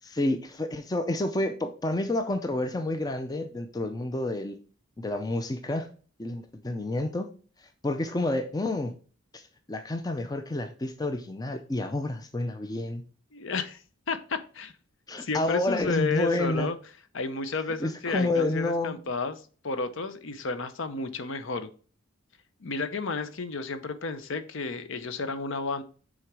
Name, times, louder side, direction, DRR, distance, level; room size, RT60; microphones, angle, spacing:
voice 1, 0.1-4.6 5.0-5.9 6.2-7.3 7.6-8.9 9.3-13.0 15.1-16.7 17.8-19.0, left 2 dB, 20° left, 7 dB, 0.4 m, -29 dB
voice 2, 13.3-13.8 14.1-14.7 15.2-16.8 17.1-21.7 22.6-25.8, left 4 dB, 60° left, 11 dB, 0.7 m, -32 dB
6.4 x 3.8 x 4.6 m, 0.40 s
head